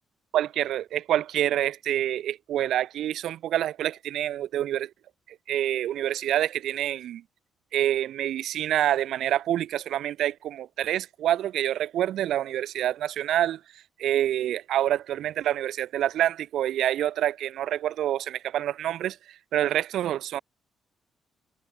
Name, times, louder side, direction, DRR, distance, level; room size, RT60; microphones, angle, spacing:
voice 1, 0.3-4.9 5.5-7.2 7.7-13.6 14.0-19.2 19.5-20.4, right 12 dB, 65° right, 3.8 m, -27 dB
cardioid pair, 175°, 0 cm